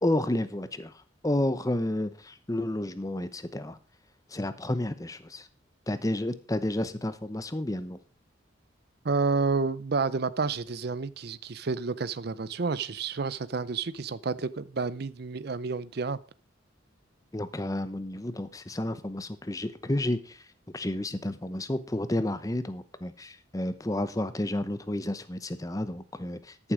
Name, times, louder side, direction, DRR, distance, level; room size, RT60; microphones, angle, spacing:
voice 1, 0.0-0.9 1.2-3.8 4.3-5.5 5.9-8.0 17.3-20.4 20.7-26.7, left 1 dB, 15° left, 0.8 m, -31 dB
voice 2, 9.0-16.2, right 4 dB, 55° right, 0.5 m, -30 dB
13.5 x 7.3 x 5.1 m
head